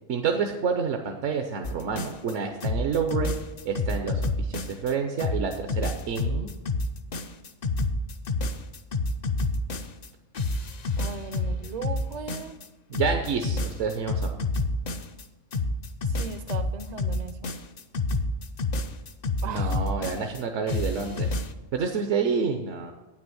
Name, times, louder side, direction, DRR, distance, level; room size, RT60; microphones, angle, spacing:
voice 1, 0.1-3.3 3.7-6.5 12.9-14.4 19.4-21.3 21.7-22.9, right 5 dB, 70° right, 4 dB, 1.1 m, -28 dB
sound 1, 1.6-2.3 2.6-4.9 5.2-10.1 10.3-12.7 12.9-15.2 15.5-20.4 20.7-21.5, left 2 dB, 50° left, 0.5 m, -28 dB
voice 2, 11.0-12.6 16.2-17.5 19.4-19.7, right 5 dB, 45° right, 11 dB, 0.6 m, -37 dB
9.0 x 6.1 x 7.8 m, 1.1 s
omnidirectional pair, 1.3 m